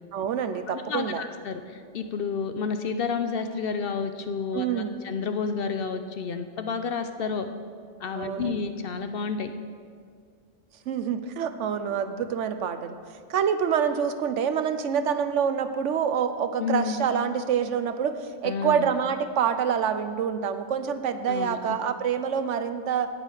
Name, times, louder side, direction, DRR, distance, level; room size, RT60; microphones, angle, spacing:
voice 1, 0.1-1.2 4.5-5.0 8.1-8.6 10.9-13.0 13.3-23.1, right 7 dB, 80° right, 10 dB, 1.0 m, -26 dB
voice 2, 0.9-7.5 8.0-9.5 16.6-17.0 18.4-18.9 21.3-21.8, left 5 dB, 60° left, 8 dB, 0.7 m, -30 dB
17.0 x 6.5 x 4.8 m, 2.1 s
omnidirectional pair, 1.2 m